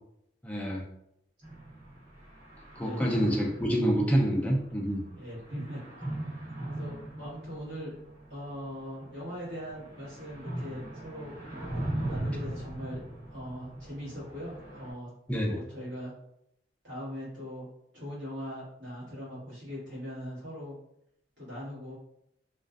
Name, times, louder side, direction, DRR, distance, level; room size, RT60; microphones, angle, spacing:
voice 1, 0.4-0.9 2.8-5.0 15.3-15.6, equal, 10° left, -1 dB, 0.4 m, -27 dB
sound 1, 1.4-14.9, right 1 dB, 30° right, 1.1 m, -39 dB
voice 2, 2.8-3.4 5.1-5.8 6.6-7.9 8.3-13.0 13.3-15.1 15.4-16.1 16.8-17.7 17.9-20.7 21.4-22.0, equal, 60° right, -7 dB, 1.2 m, -40 dB
2.4 x 2.3 x 2.3 m, 0.77 s
head